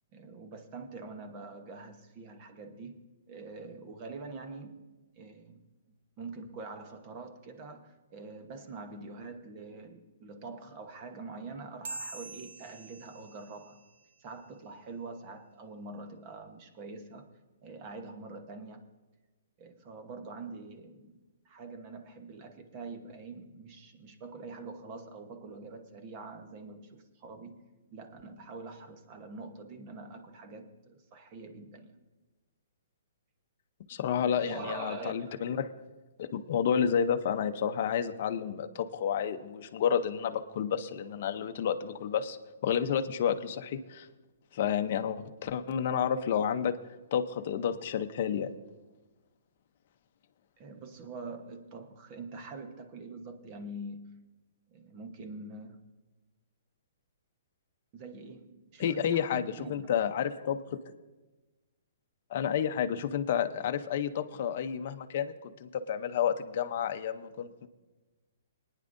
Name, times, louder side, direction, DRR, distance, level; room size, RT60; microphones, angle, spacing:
voice 1, 0.1-3.0 3.3-4.8 5.2-5.6 6.2-13.8 14.2-17.3 17.6-18.9 19.6-21.2 21.4-31.9 34.2-35.4 50.6-54.1 54.7-55.8 57.9-59.9, right 3 dB, 30° right, 8 dB, 1.0 m, -45 dB
sound 1, 11.8-14.7, right 2 dB, 60° right, 1.0 m, -45 dB
voice 2, 33.9-35.7 36.2-42.4 42.6-44.1 44.5-46.8 47.1-48.5 58.8-60.8 62.3-67.7, left 8 dB, 45° left, 7 dB, 0.7 m, -30 dB
23.5 x 9.9 x 2.6 m, 1.2 s
hypercardioid pair, 165°, 0 cm